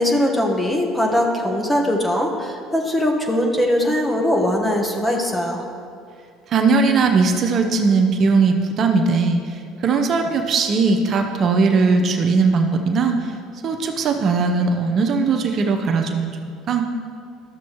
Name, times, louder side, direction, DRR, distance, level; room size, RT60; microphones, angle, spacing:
voice 1, 0.0-5.6, left 1 dB, 10° left, 1 dB, 1.3 m, -21 dB
voice 2, 6.5-9.5 9.8-13.3 13.6-16.9, right 4 dB, 50° right, 5 dB, 0.7 m, -19 dB
12.5 x 7.1 x 3.0 m, 2.3 s
supercardioid pair, 80°, 0 cm